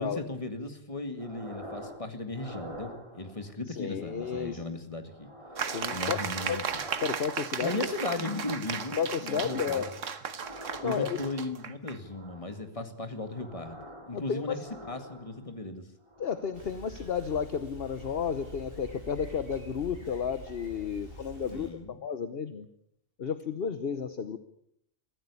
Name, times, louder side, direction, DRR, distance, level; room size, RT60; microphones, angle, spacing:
voice 1, 0.0-5.3 5.9-6.8 7.6-9.9 10.8-14.6 14.8-15.9 21.5-22.0, left 2 dB, 25° left, 7 dB, 2.2 m, -36 dB
sound 1, 1.2-2.0 2.3-3.5 4.0-4.7 5.0-7.6 8.0-8.7 9.0-10.0 10.3-11.4 12.0-12.6 13.1-15.6 16.0-16.6 17.0-17.2, equal, 25° right, 4.9 m, -47 dB
voice 2, 3.7-4.6 5.6-6.2 6.5-6.6 7.0-7.8 9.0-9.9 10.8-11.2 14.1-14.6 16.2-22.7 23.2-24.4, left 7 dB, 50° left, 11 dB, 1.2 m, -32 dB
sound 2, 5.6-12.0, right 6 dB, 75° right, 1.5 m, -35 dB
Bicycle, 16.5-21.7, equal, 45° right, 6.3 m, -46 dB
22.0 x 15.5 x 8.4 m, 0.73 s
omnidirectional pair, 1.3 m